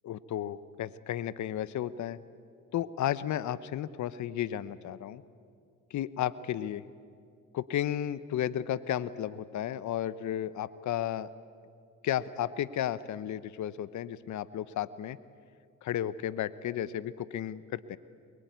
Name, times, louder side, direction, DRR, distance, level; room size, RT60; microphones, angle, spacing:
voice 1, 0.0-2.2 2.7-5.2 5.9-6.8 7.5-11.3 12.0-15.2 15.8-18.0, left 11 dB, 60° left, 16 dB, 0.9 m, -33 dB
23.0 x 22.0 x 9.4 m, 2.3 s
supercardioid pair, 80°, 33 cm